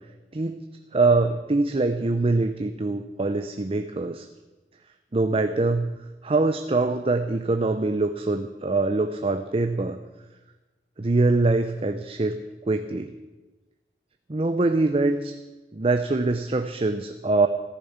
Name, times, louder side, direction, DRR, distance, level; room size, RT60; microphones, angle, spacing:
voice 1, 0.9-4.3 5.1-6.0 6.2-10.0 11.0-13.1 14.3-15.3 15.7-17.5, right 3 dB, 35° right, 8 dB, 0.6 m, -24 dB
14.0 x 10.5 x 7.2 m, 1.2 s
head